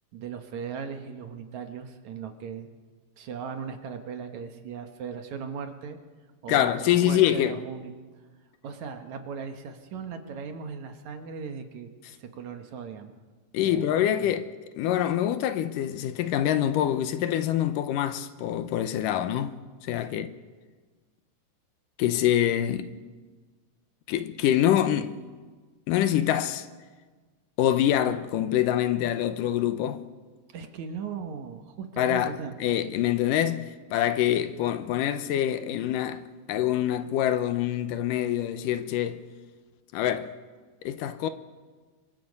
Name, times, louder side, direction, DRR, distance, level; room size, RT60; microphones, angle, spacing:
voice 1, 0.1-2.7 3.2-6.0 6.4-7.9 8.6-11.9 12.2-13.1 13.6-14.3 20.1-20.3 30.5-32.5, right 6 dB, 65° right, 2.4 m, -38 dB
voice 2, 6.5-7.6 13.5-19.5 19.8-20.3 22.0-22.9 24.1-25.2 25.9-26.7 27.6-30.0 32.0-36.2 36.5-39.2 39.9-40.4 40.8-41.3, left 11 dB, 75° left, 2.3 m, -25 dB
26.5 x 23.5 x 5.4 m
omnidirectional pair, 3.9 m